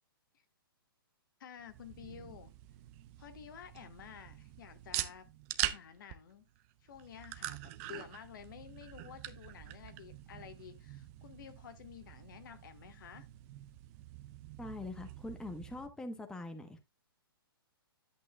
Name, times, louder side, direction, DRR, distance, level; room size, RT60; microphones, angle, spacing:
voice 1, 1.4-2.5 3.2-5.3 5.6-6.5 6.8-13.3, left 8 dB, 55° left, 1.6 m, -51 dB
sound 1, 1.6-15.9, right 15 dB, 35° right, 0.7 m, -44 dB
voice 2, 14.6-16.8, left 2 dB, 5° left, 1.1 m, -43 dB
11.0 x 8.4 x 2.3 m
hypercardioid pair, 125°, 13 cm